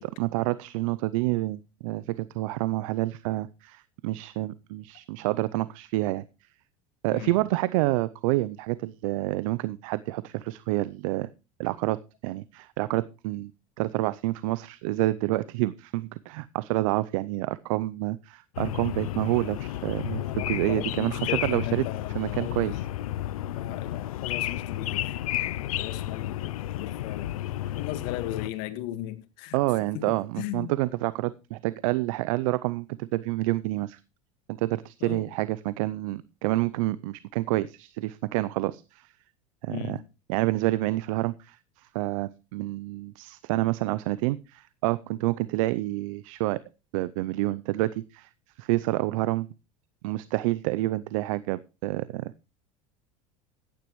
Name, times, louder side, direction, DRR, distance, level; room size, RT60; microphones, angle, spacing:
voice 1, 0.2-6.2 7.0-11.3 11.6-13.5 13.8-21.8 22.1-22.8 29.5-34.0 34.5-39.1 39.6-40.0 40.3-46.6 46.9-48.3 48.6-49.5 50.0-52.3, right 18 dB, 70° right, 0.6 m, -28 dB
sound 1, 18.5-28.5, left 13 dB, 80° left, 0.6 m, -32 dB
voice 2, 20.1-22.9 23.5-27.5 27.8-29.6 29.9-30.7 35.0-35.3 39.7-40.1, left 13 dB, 65° left, 1.7 m, -37 dB
15.0 x 10.5 x 3.1 m
hypercardioid pair, 85°, 18 cm